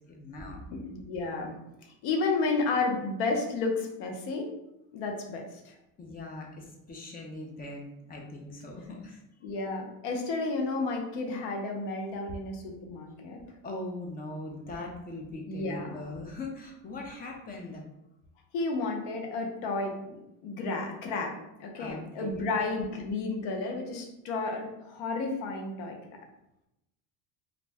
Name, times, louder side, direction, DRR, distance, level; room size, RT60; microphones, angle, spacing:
voice 1, 0.1-0.6 6.0-9.2 13.6-17.8 21.8-22.5, left 2 dB, 25° left, 1 dB, 0.3 m, -40 dB
voice 2, 0.7-1.5 1.8-4.5 4.9-5.7 9.4-13.4 15.5-16.0 18.5-26.0, left 3 dB, 75° left, 2 dB, 0.7 m, -32 dB
2.4 x 2.0 x 3.3 m, 0.88 s
cardioid pair, 130°, 40 cm